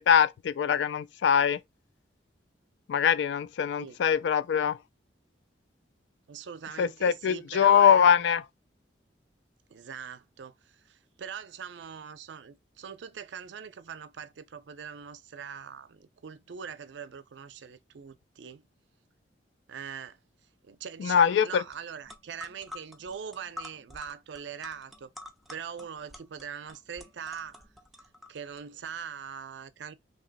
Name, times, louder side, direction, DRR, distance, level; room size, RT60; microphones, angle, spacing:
voice 1, 0.0-1.6 2.9-4.8 6.8-8.4 21.0-21.6, left 8 dB, 70° left, 0.3 m, -23 dB
voice 2, 6.3-8.1 9.7-18.7 19.7-20.2 20.7-25.1 25.5-27.6 28.3-29.9, right 7 dB, 75° right, 0.4 m, -42 dB
sound 1, 21.7-21.8 22.0-28.6, left 2 dB, ahead, 0.5 m, -47 dB
3.0 x 2.7 x 4.0 m
head